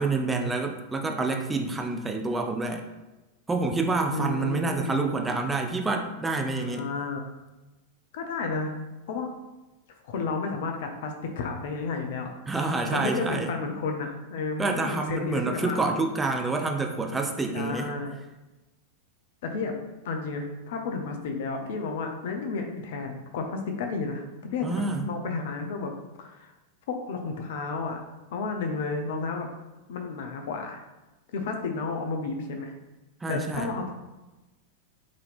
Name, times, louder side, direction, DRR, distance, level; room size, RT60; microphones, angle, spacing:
voice 1, 0.0-2.8 3.5-6.9 12.5-13.5 14.6-17.9 24.6-25.1 33.2-33.7, right 3 dB, 10° right, 2 dB, 0.4 m, -28 dB
voice 2, 4.1-5.1 6.6-7.2 8.1-8.7 9.1-9.3 10.0-12.3 12.9-15.8 17.5-18.2 19.4-19.7 20.0-25.9 26.2-26.5 26.9-28.0 28.3-29.5 29.9-30.8 31.3-32.7 33.3-33.9, left 4 dB, 55° left, 4 dB, 0.5 m, -32 dB
3.7 x 2.8 x 3.4 m, 1.1 s
figure-of-eight pair, 90°, 0 cm